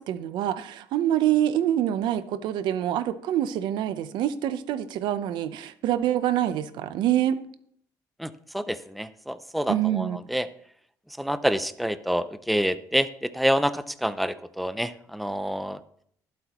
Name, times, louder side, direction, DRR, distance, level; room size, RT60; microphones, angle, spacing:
voice 1, 0.0-7.4 9.7-10.2, right 11 dB, 80° right, 0.8 m, -26 dB
voice 2, 8.2-10.5 11.2-15.8, equal, ahead, 0.5 m, -27 dB
20.5 x 7.8 x 3.0 m
cardioid pair, 130°, 8 cm